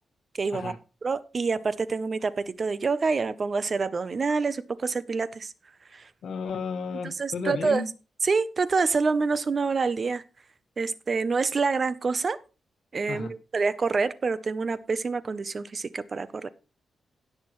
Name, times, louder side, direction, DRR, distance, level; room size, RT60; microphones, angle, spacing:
voice 1, 0.4-0.7 1.0-5.5 5.9-6.1 7.0-7.8 8.2-10.2 10.8-12.4 12.9-16.5, right 4 dB, 35° right, 0.6 m, -27 dB
voice 2, 6.2-7.9 13.1-13.3, left 5 dB, 80° left, 1.6 m, -33 dB
17.5 x 6.6 x 3.1 m
wide cardioid pair, 140°, 0 cm